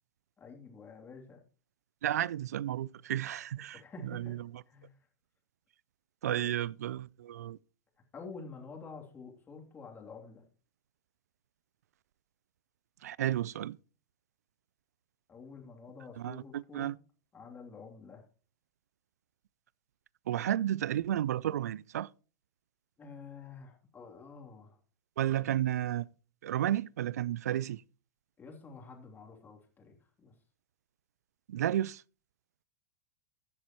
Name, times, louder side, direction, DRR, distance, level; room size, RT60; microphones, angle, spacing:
voice 1, 0.4-1.4 3.7-4.4 4.7-5.0 6.3-6.6 8.1-10.4 15.3-16.9 17.3-18.2 23.0-24.8 28.4-30.3, left 4 dB, 20° left, 2.9 m, -49 dB
voice 2, 2.0-4.5 6.2-7.6 13.0-13.8 16.2-17.0 20.3-22.1 25.2-26.1 26.4-27.8 31.5-32.0, right 12 dB, 75° right, 0.4 m, -32 dB
14.5 x 7.9 x 3.0 m
hypercardioid pair, 100°, 9 cm